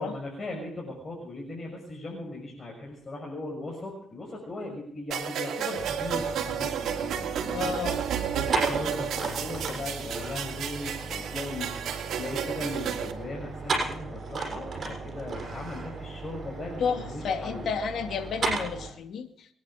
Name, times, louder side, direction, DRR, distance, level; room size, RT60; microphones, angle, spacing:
voice 1, 0.0-7.8 8.3-11.9 12.1-17.7, left 2 dB, 35° left, -1 dB, 6.2 m, -38 dB
sound 1, 5.1-13.1, right 8 dB, 70° right, 2.7 m, -32 dB
sound 2, 5.8-18.9, right 3 dB, 45° right, 7.2 m, -35 dB
voice 2, 7.5-8.0 16.8-19.5, left 6 dB, 65° left, 6 dB, 2.4 m, -31 dB
26.5 x 10.5 x 5.1 m, 0.64 s
cardioid pair, 90°, 0 cm